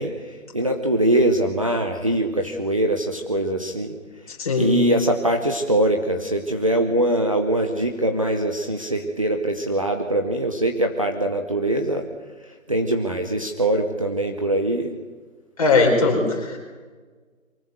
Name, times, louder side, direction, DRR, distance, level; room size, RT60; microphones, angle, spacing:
voice 1, 0.0-3.9 4.6-12.1 12.7-14.9, right 1 dB, 25° right, 4 dB, 0.9 m, -22 dB
voice 2, 4.3-4.8 15.6-16.6, left 3 dB, 25° left, 0 dB, 4.8 m, -20 dB
23.5 x 18.5 x 8.0 m, 1.4 s
hypercardioid pair, 175°, 40 cm